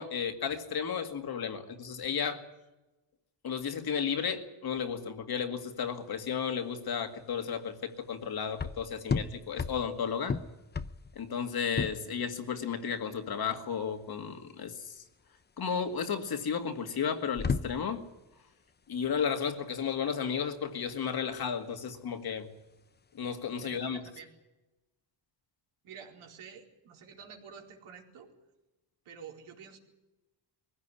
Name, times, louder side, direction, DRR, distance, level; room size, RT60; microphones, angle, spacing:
voice 1, 0.0-2.4 3.4-10.4 11.2-15.0 15.6-18.0 18.9-22.5 23.1-24.0, left 7 dB, 45° left, 6 dB, 2.2 m, -33 dB
sound 1, 5.7-23.9, left 5 dB, 20° left, 0.7 m, -39 dB
voice 2, 23.6-24.3 25.8-28.3 29.0-29.8, right 6 dB, 85° right, 1 dB, 4.4 m, -49 dB
22.0 x 16.0 x 9.9 m, 1.0 s
cardioid pair, 145°, 49 cm